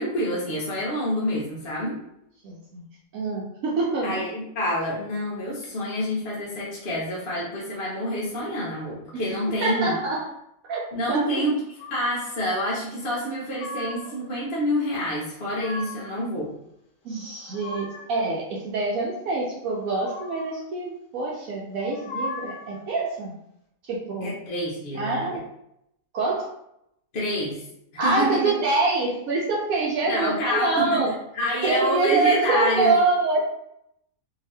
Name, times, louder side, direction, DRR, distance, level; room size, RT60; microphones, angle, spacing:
voice 1, 0.0-2.0 4.0-10.0 10.9-16.5 24.2-25.4 27.1-27.7 27.9-28.5 30.1-31.0 31.3-32.9, equal, 50° left, -6 dB, 0.9 m, -27 dB
voice 2, 2.4-2.8 3.1-4.2 9.6-10.2 10.7-10.8 11.1-11.4 17.0-23.3 23.9-24.3 24.9-25.4 26.1-26.5 28.0-31.1 31.6-33.5, right 3 dB, 75° right, -3 dB, 1.0 m, -25 dB
sound 1, 11.8-12.4 13.2-14.2 15.2-16.2 17.1-18.2 19.8-20.6 21.8-22.8, left 2 dB, 70° left, 1.1 m, -38 dB
2.8 x 2.7 x 3.2 m, 0.79 s
omnidirectional pair, 1.5 m